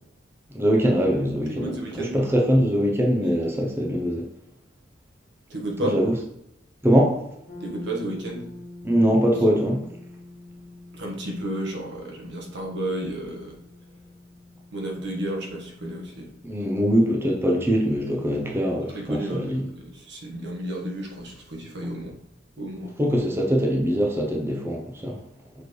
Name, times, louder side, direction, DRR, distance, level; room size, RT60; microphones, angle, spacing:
voice 1, 0.5-1.7 2.0-4.2 5.8-6.1 6.8-7.2 8.8-9.8 16.4-19.6 23.0-25.2, equal, 10° right, -1 dB, 0.7 m, -22 dB
voice 2, 1.5-2.2 5.5-6.0 7.6-8.5 10.9-13.6 14.7-16.3 18.9-22.2 22.6-22.9, right 1 dB, 65° right, -1 dB, 1.4 m, -32 dB
sound 1, 7.5-17.3, left 2 dB, 40° left, 1.3 m, -45 dB
6.4 x 4.7 x 3.2 m, 0.81 s
head